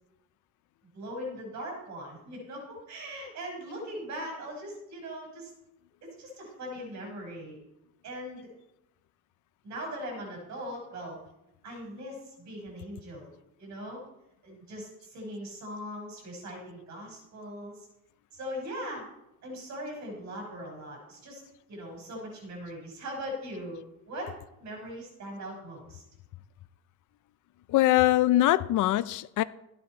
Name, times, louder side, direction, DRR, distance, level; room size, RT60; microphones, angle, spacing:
voice 1, 0.9-5.5 6.0-7.6 8.0-8.5 9.6-11.2 11.6-13.3 13.6-14.0 14.4-17.9 18.3-19.0 19.4-21.4 21.7-23.8 24.1-24.3 24.6-26.0, equal, 60° right, 5.4 m, -40 dB
voice 2, 27.7-29.4, left 15 dB, 65° left, 0.5 m, -22 dB
14.0 x 9.3 x 4.5 m
cardioid pair, 150°, 33 cm